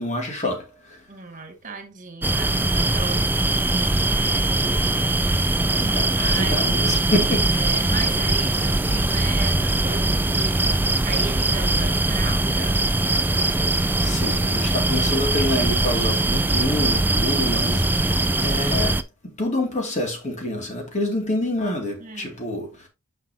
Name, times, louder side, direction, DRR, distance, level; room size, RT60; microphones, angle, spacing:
voice 1, 0.0-1.0 5.7-7.5 14.0-22.9, left 1 dB, 35° left, 2.3 m, -27 dB
voice 2, 1.1-5.2 5.9-6.6 7.5-10.7 11.0-12.9 14.1-14.3 21.3-21.4 22.0-22.4, right 4 dB, 40° right, 2.0 m, -36 dB
sound 1, 2.2-19.0, right 2 dB, 10° right, 0.4 m, -21 dB
9.8 x 5.5 x 2.7 m
head